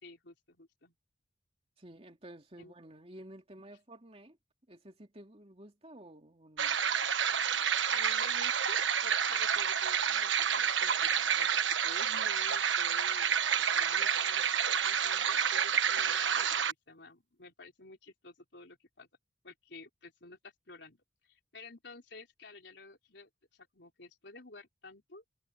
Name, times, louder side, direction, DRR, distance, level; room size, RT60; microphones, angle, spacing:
voice 1, 0.0-0.9 2.6-2.7 7.4-19.1 19.4-25.2, left 3 dB, 65° left, 4.1 m, -52 dB
voice 2, 1.8-4.4 4.7-6.8, right 1 dB, 30° right, 2.8 m, -52 dB
sound 1, 6.6-16.7, right 8 dB, 85° right, 1.3 m, -29 dB
head